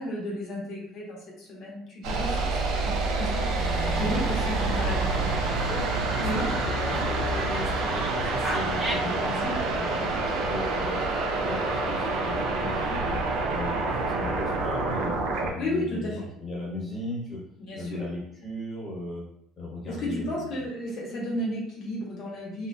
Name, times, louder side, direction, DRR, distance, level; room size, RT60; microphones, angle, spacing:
voice 1, 0.0-2.4 2.8-5.2 6.2-6.6 9.0-9.6 15.6-16.2 17.7-18.0 19.9-22.7, equal, 60° left, -3 dB, 1.1 m, -33 dB
sound 1, 2.0-15.5, right 3 dB, 75° right, 0.5 m, -27 dB
Dog, 3.5-9.2, right 3 dB, 40° right, 0.9 m, -34 dB
voice 2, 6.2-11.0 11.4-13.2 13.5-17.4 17.7-19.3 19.6-20.6, left 1 dB, 35° left, -4 dB, 1.2 m, -37 dB
2.6 x 2.4 x 2.3 m, 0.70 s
supercardioid pair, 85°, 0 cm